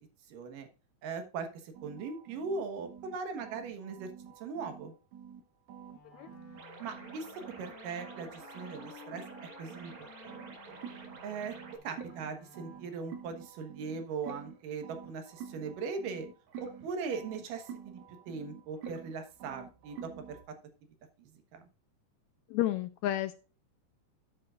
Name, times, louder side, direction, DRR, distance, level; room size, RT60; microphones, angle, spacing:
voice 1, 0.3-0.7 1.0-4.1 4.4-4.9 6.8-7.3 7.6-9.2 9.6-10.8 11.2-11.5 11.8-16.3 16.8-20.4 21.2-21.6, right 5 dB, 90° right, 6 dB, 3.0 m, -40 dB
sound 1, 1.7-5.4 5.7-10.0 10.3-20.4, right 8 dB, 65° right, 2.6 m, -49 dB
Wind instrument woodwind instrument, 5.9-13.3, left 6 dB, 40° left, 1.4 m, -56 dB
sound 2, 6.6-11.8, right 4 dB, 45° right, 2.0 m, -50 dB
voice 2, 22.5-23.3, left 14 dB, 80° left, 11 dB, 1.7 m, -31 dB
12.5 x 7.5 x 2.4 m, 0.34 s
omnidirectional pair, 3.7 m